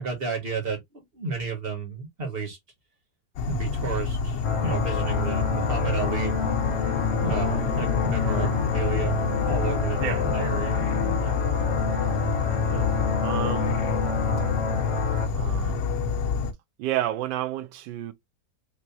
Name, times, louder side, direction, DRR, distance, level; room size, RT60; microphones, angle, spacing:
voice 1, 0.0-2.6 3.5-6.3 7.2-10.8, right 5 dB, 35° right, 1.8 m, -31 dB
Insect / Frog, 3.4-16.5, left 5 dB, 90° left, 1.4 m, -28 dB
sound 1, 4.4-15.3, left 5 dB, 55° left, 1.0 m, -28 dB
voice 2, 13.2-13.8 15.3-15.9 16.8-18.1, right 13 dB, 90° right, 1.3 m, -31 dB
4.4 x 3.1 x 2.7 m
omnidirectional pair, 1.9 m